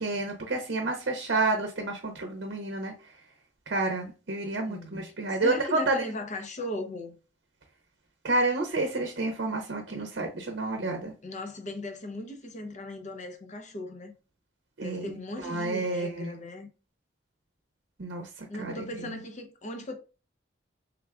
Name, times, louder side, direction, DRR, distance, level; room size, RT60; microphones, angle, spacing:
voice 1, 0.0-3.2 3.7-6.1 8.2-11.1 14.8-16.3 18.0-19.2, right 2 dB, 70° right, 0.7 m, -30 dB
voice 2, 5.4-7.2 11.2-14.1 14.8-16.7 18.5-19.9, left 1 dB, 40° left, 0.6 m, -37 dB
3.5 x 2.3 x 3.4 m
head